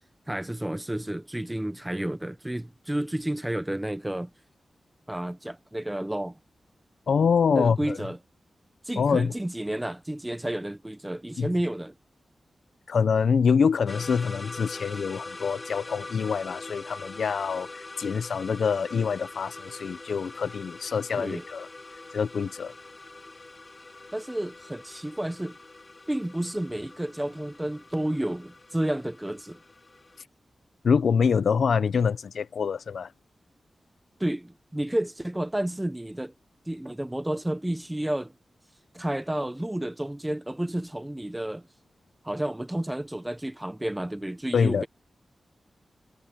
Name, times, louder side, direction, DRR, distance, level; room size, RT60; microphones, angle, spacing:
voice 1, 0.3-4.3 5.1-6.4 7.5-8.2 8.8-11.9 21.2-21.4 24.1-25.6 26.1-29.6 34.2-36.3 36.7-38.3 38.9-41.7 42.2-44.9, right 1 dB, 10° right, 0.9 m, -31 dB
voice 2, 7.1-8.0 9.0-9.3 11.4-11.5 12.9-17.7 18.0-21.7 22.1-22.7 30.8-33.1 44.5-44.9, left 6 dB, 90° left, 0.7 m, -25 dB
sound 1, 13.9-30.2, left 2 dB, 30° left, 5.7 m, -43 dB
wide cardioid pair, 115°, 0 cm